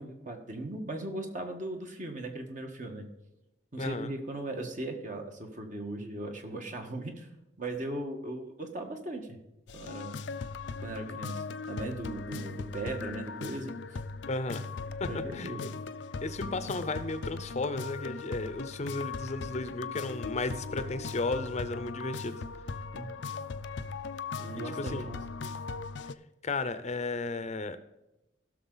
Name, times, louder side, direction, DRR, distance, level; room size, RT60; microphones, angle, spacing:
voice 1, 0.0-3.1 3.7-7.3 7.6-9.4 9.7-10.2 10.8-13.7 15.0-15.7 22.9-23.2 24.4-25.2, right 1 dB, 45° right, 4 dB, 1.6 m, -38 dB
voice 2, 3.8-4.1 14.3-14.7 15.0-15.1 15.3-15.7 16.2-22.4 24.8-25.1 26.4-27.8, left 3 dB, 40° left, 12 dB, 0.6 m, -34 dB
sound 1, 9.7-26.1, left 4 dB, 90° left, 0.5 m, -39 dB
16.5 x 6.4 x 4.0 m, 0.95 s
head